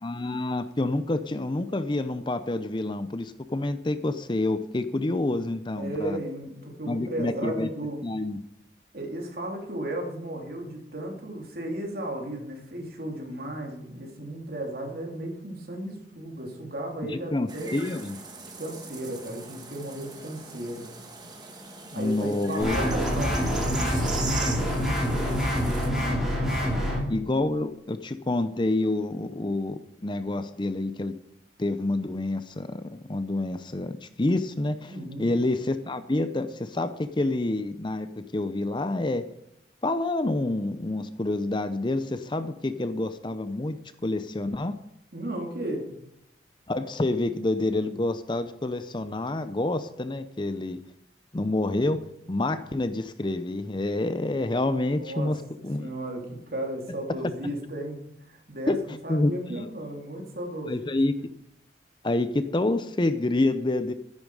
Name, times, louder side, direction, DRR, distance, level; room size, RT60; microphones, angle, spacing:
voice 1, 0.0-6.2 6.9-7.7 8.0-8.4 17.1-18.2 21.9-22.8 27.1-31.1 31.6-34.9 35.2-38.1 38.3-39.2 39.8-44.8 46.7-50.8 51.3-52.0 52.3-55.4 55.6-55.9 58.7-58.8 59.1-59.7 60.7-61.2 62.0-63.9, left 2 dB, 25° left, 11 dB, 0.6 m, -28 dB
voice 2, 5.8-8.0 8.9-17.8 18.6-20.8 21.9-26.2 26.7-26.8 34.9-35.3 45.1-45.8 54.7-55.3 55.8-60.8, right 1 dB, 55° right, 0 dB, 3.2 m, -35 dB
sound 1, 17.5-25.9, right 4 dB, 25° right, 1.7 m, -40 dB
sound 2, 22.6-27.0, equal, 5° right, 4.9 m, -26 dB
13.0 x 10.5 x 4.9 m, 0.81 s
head